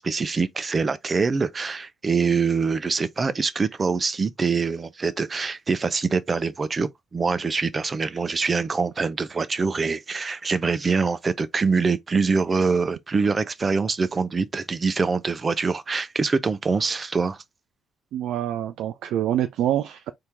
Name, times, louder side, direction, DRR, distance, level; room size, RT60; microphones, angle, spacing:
voice 1, 0.0-17.4, right 4 dB, 35° right, 0.7 m, -24 dB
voice 2, 18.1-20.1, right 11 dB, 70° right, 0.4 m, -26 dB
4.4 x 2.8 x 3.5 m
hypercardioid pair, 50°, 0 cm